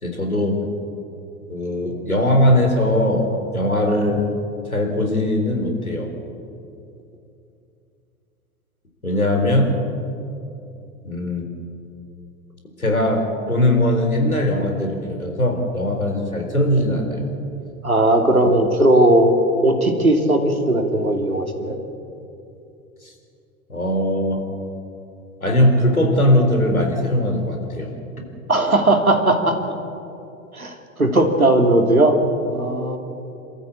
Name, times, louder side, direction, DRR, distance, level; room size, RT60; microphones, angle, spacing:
voice 1, 0.0-0.6 1.5-4.3 4.7-6.1 9.0-9.7 11.0-11.5 12.8-17.3 23.0-23.1 23.7-24.4 25.4-27.9, left 1 dB, 85° left, 3 dB, 4.0 m, -20 dB
voice 2, 17.8-19.3 19.6-21.8 28.5-29.5 30.5-32.2 32.5-33.0, right 1 dB, 85° right, 4 dB, 2.8 m, -17 dB
27.5 x 13.5 x 8.6 m, 2.7 s
figure-of-eight pair, 90°, 42 cm